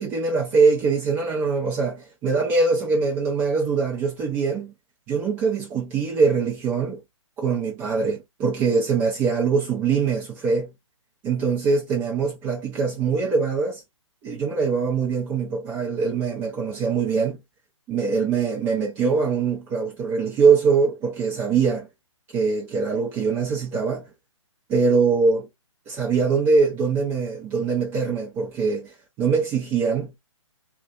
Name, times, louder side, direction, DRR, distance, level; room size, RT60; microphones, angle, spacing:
voice 1, 0.0-4.7 5.1-7.0 7.4-10.7 11.2-13.8 14.2-17.4 17.9-21.9 22.3-24.1 24.7-25.5 25.9-30.1, right 5 dB, 15° right, 0.4 m, -23 dB
2.5 x 2.2 x 2.3 m
figure-of-eight pair, 130°, 17 cm